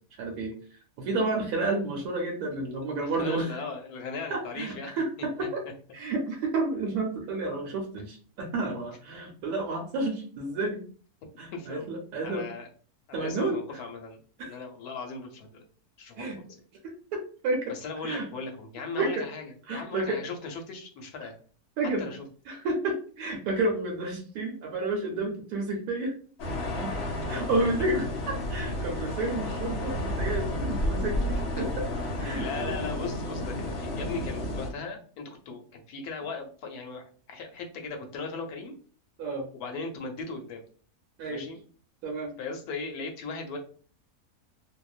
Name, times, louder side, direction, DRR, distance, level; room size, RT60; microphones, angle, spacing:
voice 1, 0.2-3.6 4.3-5.6 5.9-10.8 11.4-12.4 13.1-13.6 14.4-14.5 16.2-16.4 16.8-17.7 18.0-18.3 18.9-19.2 19.7-20.2 21.8-22.1 22.5-26.1 26.8-26.9 27.3-31.7 32.2-32.7 39.2-39.5 41.2-41.5 42.0-42.3, right 2 dB, 85° right, 2 dB, 1.1 m, -31 dB
voice 2, 2.8-4.9 11.5-11.9 12.2-12.7 13.1-15.6 16.0-16.3 17.7-21.3 22.0-22.2 27.6-27.7 31.6-31.7 32.3-38.7 39.5-40.6 41.3-41.6 42.4-43.6, left 4 dB, 85° left, 3 dB, 1.2 m, -38 dB
sound 1, 26.4-34.7, left 1 dB, 55° left, 0.8 m, -31 dB
2.8 x 2.0 x 2.4 m, 0.42 s
omnidirectional pair, 1.6 m